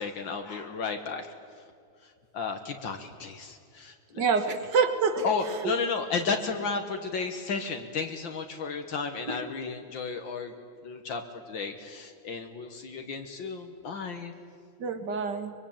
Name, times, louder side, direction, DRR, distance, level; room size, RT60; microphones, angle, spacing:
voice 1, 0.0-1.3 2.0-4.2 5.2-10.5 10.8-14.3, left 4 dB, 70° left, 5 dB, 2.1 m, -33 dB
voice 2, 4.1-5.7 9.3-9.4 14.8-15.5, right 5 dB, 60° right, 9 dB, 2.3 m, -27 dB
24.0 x 23.0 x 8.9 m, 2.3 s
omnidirectional pair, 2.2 m